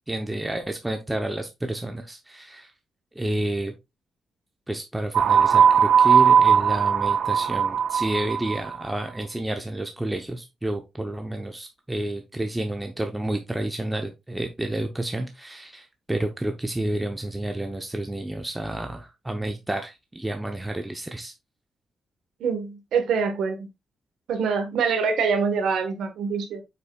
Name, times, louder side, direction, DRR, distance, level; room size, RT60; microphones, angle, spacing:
voice 1, 0.1-2.7 3.2-3.7 4.7-21.3, right 1 dB, 10° right, 0.7 m, -30 dB
sound 1, 5.1-8.8, right 7 dB, 65° right, 0.5 m, -18 dB
voice 2, 22.4-23.7 24.3-26.6, right 5 dB, 90° right, 1.3 m, -25 dB
7.7 x 5.8 x 2.3 m
cardioid pair, 130°, 0 cm